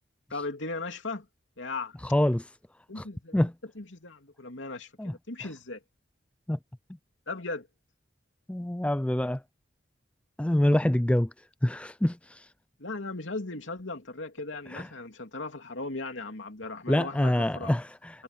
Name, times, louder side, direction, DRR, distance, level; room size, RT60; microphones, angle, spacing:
voice 1, 0.3-1.3 1.6-2.0 2.9-3.4 3.8-5.8 7.3-7.7 12.8-17.7, left 3 dB, 80° left, 2.8 m, -37 dB
voice 2, 2.0-2.5 3.0-3.1 3.3-3.5 5.0-5.2 6.5-6.6 8.5-9.4 10.4-11.3 11.6-12.5 14.7-14.9 16.9-18.2, left 1 dB, 5° left, 0.4 m, -26 dB
head